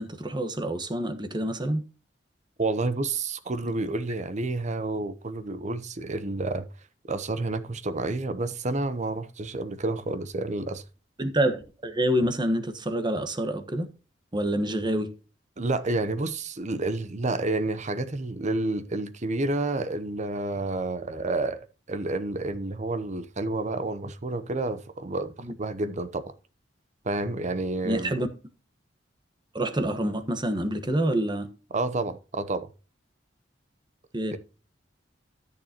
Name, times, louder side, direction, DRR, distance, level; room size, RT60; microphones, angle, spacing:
voice 1, 0.0-1.8 11.2-13.9 14.3-15.1 25.4-25.5 27.8-28.3 29.5-31.5 34.1-34.4, right 1 dB, 25° right, 1.2 m, -27 dB
voice 2, 2.6-6.7 7.1-10.8 15.6-21.6 21.9-26.3 27.0-28.3 31.7-32.7 34.3-34.4, right 2 dB, 40° right, 0.8 m, -29 dB
13.5 x 6.7 x 2.9 m
head